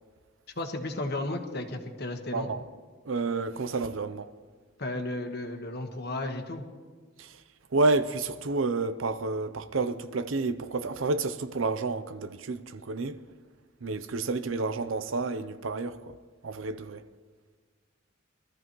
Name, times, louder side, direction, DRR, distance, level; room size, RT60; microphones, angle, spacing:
voice 1, 0.6-2.5 4.8-6.6, left 2 dB, 55° left, 1.4 m, -34 dB
voice 2, 2.3-2.6 3.1-4.3 7.2-7.3 7.7-13.2 13.8-16.2 16.4-17.0, right 3 dB, 75° right, 0.6 m, -30 dB
22.5 x 13.5 x 3.1 m
head